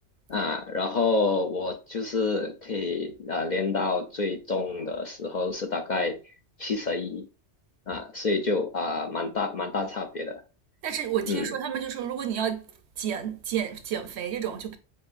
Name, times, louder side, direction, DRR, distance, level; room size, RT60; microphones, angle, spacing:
voice 1, 0.3-6.2 6.6-7.2 7.9-10.4 11.2-11.5, left 3 dB, 50° left, 0.6 m, -28 dB
voice 2, 10.8-12.6 13.0-14.8, right 9 dB, 70° right, 0.9 m, -30 dB
7.3 x 2.6 x 2.4 m
omnidirectional pair, 1.2 m